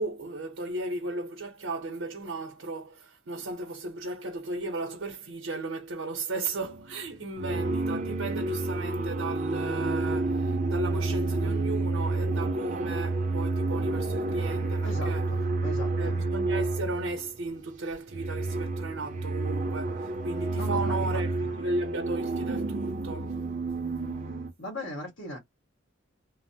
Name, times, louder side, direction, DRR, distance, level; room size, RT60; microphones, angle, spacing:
voice 1, 0.0-15.3 16.0-23.3, right 2 dB, 80° right, 0.7 m, -35 dB
sound 1, 6.6-6.9 7.3-17.4 17.9-24.5, right 2 dB, 40° right, 0.5 m, -30 dB
voice 2, 14.8-16.2 20.6-21.2 24.6-25.4, left 1 dB, 70° left, 1.5 m, -38 dB
3.0 x 2.0 x 2.7 m
head